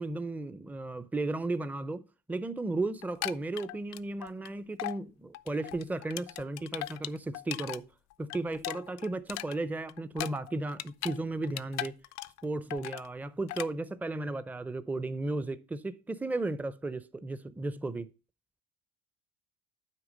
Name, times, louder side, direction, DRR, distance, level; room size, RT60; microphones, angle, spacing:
voice 1, 0.0-2.0 2.3-7.9 8.2-12.0 12.4-18.1, right 2 dB, 5° right, 0.5 m, -34 dB
sound 1, 3.0-4.5 4.8-5.0 5.3-7.8 8.1-11.2 11.4-12.4 12.7-13.1 13.5-13.7, left 16 dB, 60° left, 0.5 m, -38 dB
8.2 x 4.8 x 5.2 m
supercardioid pair, 80°, 31 cm